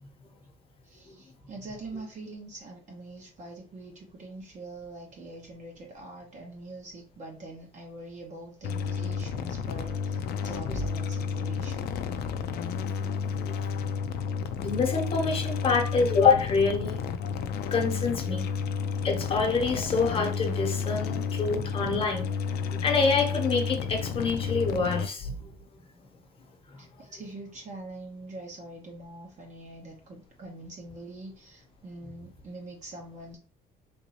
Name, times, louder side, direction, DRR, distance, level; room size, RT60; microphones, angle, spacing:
voice 1, 0.8-11.9 26.8-33.4, right 2 dB, 45° right, 1.0 m, -44 dB
sound 1, 8.6-25.1, left 6 dB, 70° left, 0.4 m, -31 dB
voice 2, 14.6-18.4 19.0-22.3 22.8-25.4, left 4 dB, 35° left, 1.1 m, -26 dB
3.6 x 2.6 x 2.9 m
cardioid pair, 110°, 17 cm